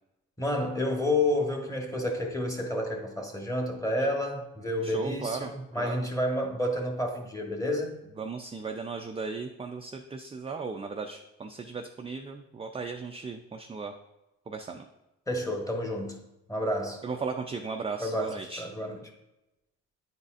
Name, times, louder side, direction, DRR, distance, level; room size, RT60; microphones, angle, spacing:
voice 1, 0.4-8.0 15.3-16.2 16.5-17.0 18.0-19.0, left 1 dB, 10° left, 2 dB, 1.1 m, -30 dB
voice 2, 4.8-6.1 8.2-13.9 14.5-14.9 17.0-18.7, right 4 dB, 20° right, 3 dB, 0.4 m, -36 dB
9.4 x 4.1 x 2.5 m, 0.96 s
cardioid pair, 90°, 30 cm